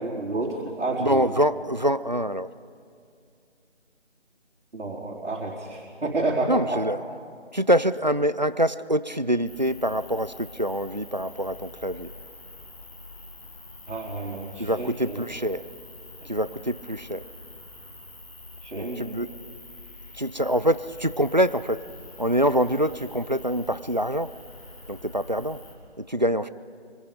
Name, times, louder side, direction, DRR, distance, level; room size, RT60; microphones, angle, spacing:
voice 1, 0.0-1.3 4.7-6.8 13.9-15.2 16.2-16.3 18.6-19.0, right 2 dB, 90° right, -4 dB, 4.2 m, -30 dB
voice 2, 1.0-2.5 6.5-7.0 7.5-12.1 14.6-15.6 16.3-17.2 18.8-19.3 20.2-21.8 22.2-24.3 24.9-25.6 26.0-26.5, equal, 40° right, 15 dB, 0.4 m, -25 dB
sound 1, 9.5-25.7, left 2 dB, 30° left, 3.3 m, -45 dB
25.0 x 25.0 x 5.2 m, 2.3 s
figure-of-eight pair, 175°, 34 cm